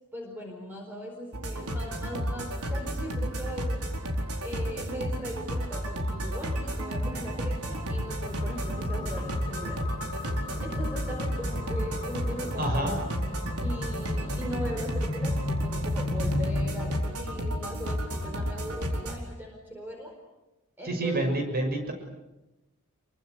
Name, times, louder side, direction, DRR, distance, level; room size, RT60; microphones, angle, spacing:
voice 1, 0.1-3.8 4.4-9.8 10.6-13.0 13.6-20.1 20.8-21.2, equal, 10° right, 1 dB, 4.4 m, -39 dB
sound 1, 1.3-19.2, equal, 90° right, 4.4 m, -32 dB
sound 2, 7.0-17.0, left 2 dB, 25° left, 1.1 m, -36 dB
voice 2, 12.6-12.9 20.8-21.9, right 1 dB, 45° right, 5 dB, 6.2 m, -28 dB
28.0 x 24.0 x 8.1 m, 1.0 s
head